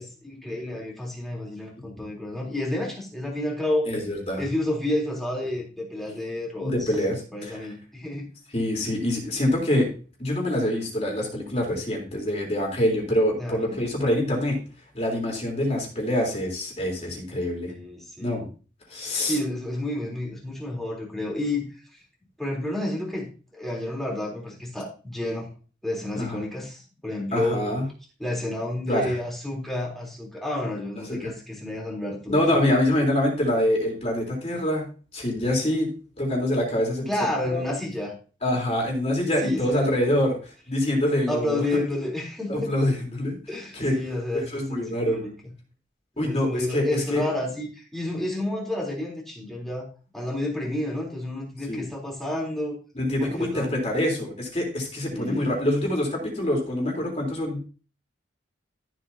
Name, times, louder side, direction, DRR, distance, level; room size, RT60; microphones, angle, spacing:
voice 1, 0.0-3.9 4.4-7.0 7.3-8.3 13.4-13.8 17.6-18.5 19.2-22.0 22.4-25.5 25.8-27.6 28.2-32.6 37.1-38.2 39.4-39.9 41.3-42.7 43.5-45.3 46.2-49.9 50.1-52.8 53.2-53.8 55.1-55.6, left 1 dB, ahead, -3 dB, 3.6 m, -30 dB
voice 2, 3.9-4.4 6.6-7.6 8.5-9.9 10.2-14.6 14.9-17.7 18.2-18.4 18.9-19.4 26.2-26.4 27.3-27.9 28.9-29.1 31.1-31.2 32.3-34.9 35.1-35.9 36.2-37.1 37.5-37.7 38.4-41.8 42.5-43.3 43.7-43.9 44.5-45.3 46.2-47.2 51.7-51.8 53.0-57.6, left 1 dB, 35° left, -1 dB, 3.8 m, -25 dB
14.0 x 7.8 x 2.8 m, 0.36 s
head